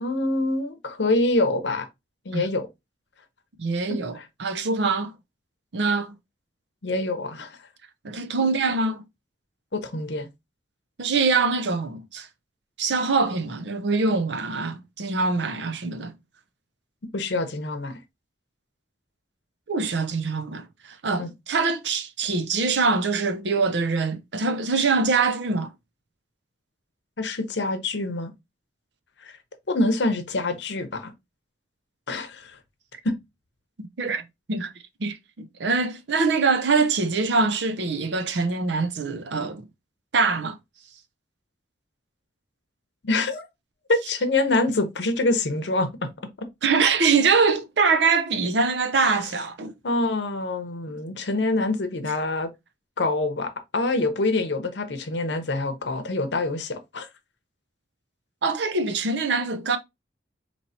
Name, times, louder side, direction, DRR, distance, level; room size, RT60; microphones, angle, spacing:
voice 1, 0.0-1.9 2.3-2.7 6.8-7.6 9.7-10.3 17.1-17.9 21.2-21.3 27.2-28.3 29.2-29.4 29.7-31.1 32.1-32.6 33.0-33.1 43.0-43.5 43.9-45.9 49.0-49.2 49.8-52.5 53.0-57.1, left 2 dB, 70° left, 0.8 m, -25 dB
voice 2, 3.6-5.1 5.7-6.2 8.0-9.0 11.0-12.3 12.8-16.1 19.7-25.7 34.0-34.2 34.5-34.7 35.0-39.6 40.1-40.6 46.6-49.7 58.4-59.8, right 4 dB, 70° right, 0.6 m, -24 dB
4.3 x 3.0 x 2.7 m
head